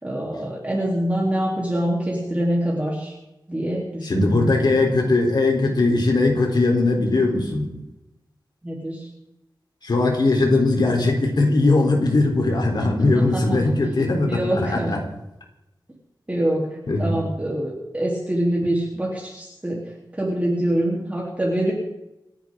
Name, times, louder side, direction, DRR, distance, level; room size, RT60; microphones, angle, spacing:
voice 1, 0.0-3.1 3.5-4.9 8.6-9.1 13.1-14.9 16.3-16.7 17.0-19.8 20.1-21.7, right 1 dB, 20° right, -4 dB, 3.7 m, -25 dB
voice 2, 4.0-7.7 9.8-15.0 16.9-17.1, left 2 dB, 65° left, 1 dB, 3.9 m, -20 dB
29.0 x 10.5 x 3.9 m, 0.93 s
wide cardioid pair, 105°, 8 cm